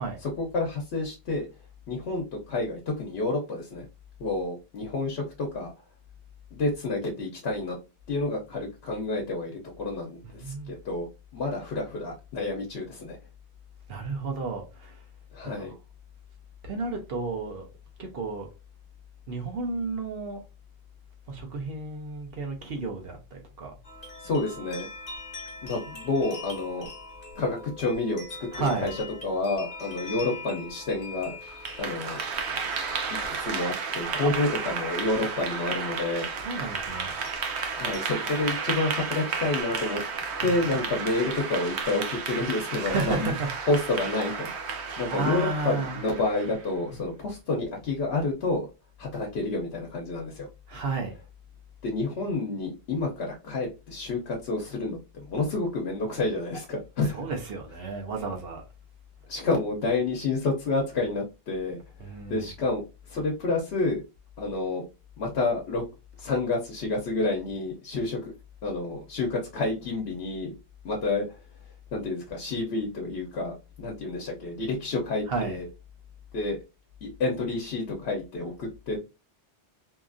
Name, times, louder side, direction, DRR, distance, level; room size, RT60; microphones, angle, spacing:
voice 1, 0.2-1.5 1.9-3.9 4.2-5.7 6.5-7.8 8.1-13.2 15.3-15.7 24.2-24.9 25.6-26.9 27.4-28.2 28.8-31.4 31.8-32.2 33.4-36.3 37.7-40.0 40.4-43.3 43.7-44.5 45.0-48.7 49.0-50.5 51.8-57.2 59.3-64.0 64.4-64.8 65.2-65.8 66.2-68.3 68.6-70.5 70.8-71.2 71.9-75.7 76.3-76.6 77.0-79.0, left 3 dB, 75° left, 0.9 m, -29 dB
voice 2, 10.2-10.7 13.9-15.0 15.4-15.8 16.6-17.7 18.0-18.5 19.3-20.4 21.3-23.8 25.9-26.0 28.5-29.0 34.2-34.4 36.3-37.1 40.4-40.9 42.8-43.5 44.6-46.1 50.7-51.1 57.0-58.6 62.0-62.5 75.2-75.6, right 3 dB, 65° right, 0.9 m, -32 dB
sound 1, 23.8-43.2, left 2 dB, 45° left, 0.9 m, -45 dB
Clapping / Applause, 31.4-46.7, right 5 dB, 85° right, 0.9 m, -33 dB
2.9 x 2.4 x 2.4 m
omnidirectional pair, 1.1 m